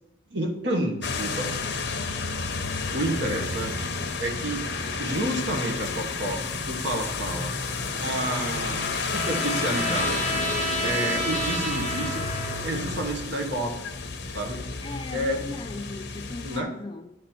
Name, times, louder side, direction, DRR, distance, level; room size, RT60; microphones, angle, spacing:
voice 1, 0.3-1.5 2.9-3.9 4.2-4.7 5.0-10.4 10.8-12.2 12.6-13.8 14.3-14.7 15.1-15.4 16.4-16.7, right 1 dB, 60° right, 1.1 m, -30 dB
sound 1, 1.0-16.6, left 4 dB, 60° left, 0.7 m, -31 dB
Trumpet, 7.7-12.8, right 1 dB, 45° right, 2.3 m, -32 dB
voice 2, 14.8-17.1, left 2 dB, 25° left, 0.4 m, -38 dB
9.7 x 3.4 x 4.3 m
head